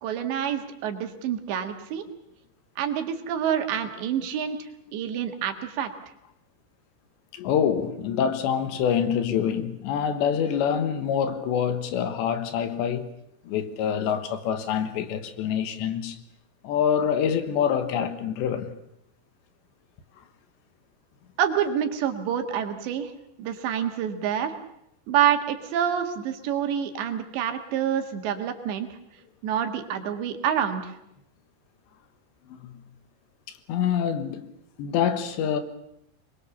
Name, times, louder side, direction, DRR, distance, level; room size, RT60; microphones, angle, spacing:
voice 1, 0.0-2.1 2.8-4.6 4.9-5.9 21.4-23.1 23.4-24.5 25.1-28.9 29.4-31.0, right 9 dB, 80° right, 3.9 m, -27 dB
voice 2, 7.3-13.1 13.5-16.2 16.6-18.7 32.6-32.7 33.7-34.4 34.8-35.6, left 8 dB, 85° left, 3.7 m, -26 dB
24.0 x 21.5 x 7.2 m
omnidirectional pair, 5.1 m